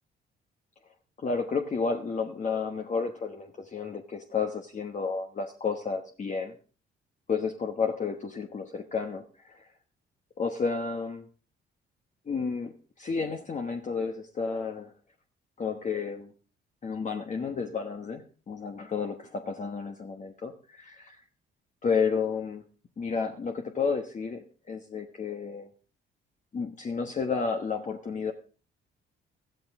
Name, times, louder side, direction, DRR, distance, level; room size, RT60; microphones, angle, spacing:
voice 1, 1.2-6.5 7.3-9.7 10.4-11.3 12.3-14.9 15.6-16.3 16.8-21.2 21.8-22.6 23.0-25.7 26.5-28.3, left 5 dB, 40° left, 4 dB, 1.2 m, -31 dB
14.0 x 13.0 x 3.6 m, 0.38 s
cardioid pair, 90°, 20 cm